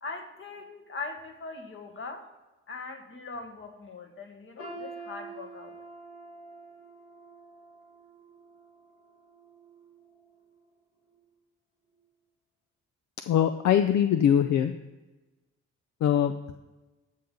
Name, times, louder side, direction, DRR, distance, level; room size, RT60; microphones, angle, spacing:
voice 1, 0.0-2.3 2.7-5.7, left 3 dB, 45° left, 5 dB, 1.6 m, -41 dB
sound 1, 4.6-10.5 10.9-11.2 11.9-12.0, right 3 dB, 90° left, 2.6 m, -47 dB
voice 2, 13.3-14.7 16.0-16.5, left 9 dB, 65° left, 9 dB, 0.6 m, -23 dB
13.5 x 5.7 x 3.8 m, 1.1 s
cardioid pair, 90°, 30 cm